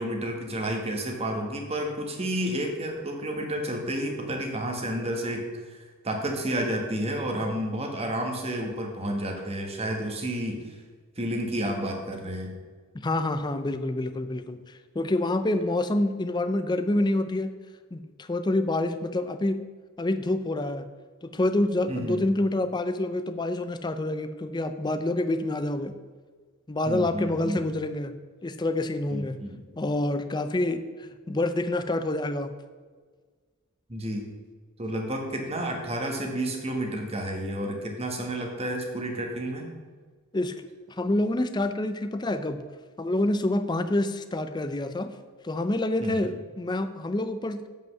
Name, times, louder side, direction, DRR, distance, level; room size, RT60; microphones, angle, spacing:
voice 1, 0.0-10.8 11.2-12.6 21.9-22.2 26.8-27.7 29.1-29.6 33.9-34.3 34.8-39.7 46.0-46.3, right 1 dB, 30° right, 2 dB, 1.3 m, -31 dB
voice 2, 12.9-17.5 17.9-19.6 20.0-20.9 21.2-25.9 26.7-28.1 28.4-29.4 29.8-32.5 40.3-40.6 40.9-42.6 43.0-45.1 45.4-47.6, left 1 dB, 20° left, 10 dB, 0.5 m, -27 dB
7.7 x 5.3 x 6.6 m, 1.5 s
head